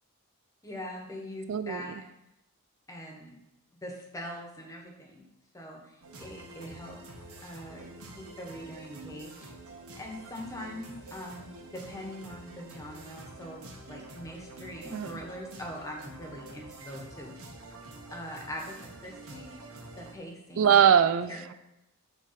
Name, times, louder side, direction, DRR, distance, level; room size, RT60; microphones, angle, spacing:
voice 1, 0.6-2.1 2.9-3.4 3.8-5.2 5.5-7.0 7.4-7.9 8.2-9.5 10.0-17.4 18.1-19.5 20.0-20.8 21.3-21.5, equal, 15° left, 1 dB, 1.2 m, -42 dB
voice 2, 1.5-1.8 14.9-15.1 20.6-21.5, right 8 dB, 60° right, 12 dB, 0.3 m, -22 dB
sound 1, 6.0-20.1, right 2 dB, 85° right, 1.5 m, -47 dB
9.7 x 3.3 x 5.7 m, 0.87 s
head